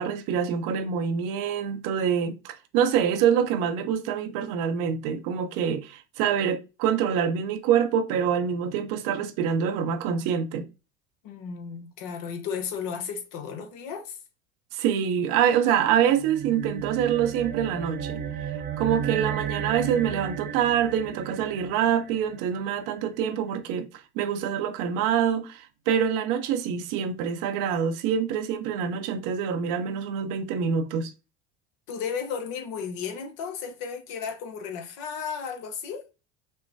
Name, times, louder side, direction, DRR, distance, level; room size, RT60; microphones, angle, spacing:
voice 1, 0.0-10.7 14.7-18.2 18.8-23.9 24.2-31.1, right 8 dB, 65° right, 0.7 m, -25 dB
voice 2, 11.2-14.2 31.9-36.1, left 6 dB, 65° left, 1.0 m, -34 dB
sound 1, 16.0-22.7, right 8 dB, 30° right, 0.5 m, -34 dB
5.5 x 2.1 x 2.6 m
hypercardioid pair, 75°, 36 cm